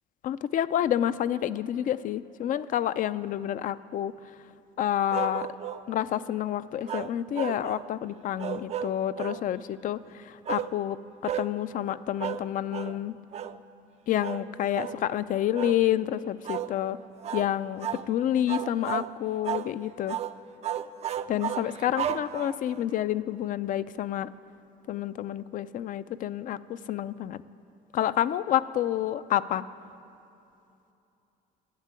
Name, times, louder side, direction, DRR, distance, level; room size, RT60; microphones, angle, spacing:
voice 1, 0.2-4.1 4.8-5.5 5.9-11.0 11.2-13.1 14.1-17.0 17.3-20.2 21.3-24.3 24.9-27.4 27.9-29.6, left 11 dB, 50° left, 15 dB, 0.4 m, -29 dB
sound 1, 5.1-5.9 6.9-7.9 8.4-9.4 10.5-10.7 11.2-11.5 12.2-12.5 12.7-13.0 13.3-13.6 14.2-14.4 14.7-15.0 15.5-15.8 16.4-16.7 17.2-17.5 17.8-18.1 18.5-19.1 19.4-19.7 20.1-20.3 20.6-22.8, right 9 dB, 40° right, 0.4 m, -33 dB
11.5 x 7.4 x 9.5 m, 2.8 s
cardioid pair, 110°, 17 cm